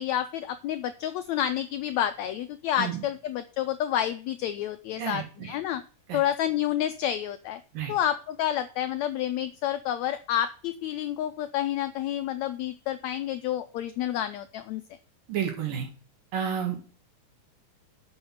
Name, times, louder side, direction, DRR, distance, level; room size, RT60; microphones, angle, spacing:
voice 1, 0.0-5.8 6.1-7.6 7.9-14.8, left 11 dB, 85° left, 10 dB, 1.6 m, -29 dB
voice 2, 5.0-5.6 6.1-6.2 7.7-7.9 15.3-15.9 16.3-16.9, right 8 dB, 85° right, 3 dB, 3.8 m, -31 dB
7.1 x 6.4 x 7.4 m, 0.39 s
omnidirectional pair, 3.8 m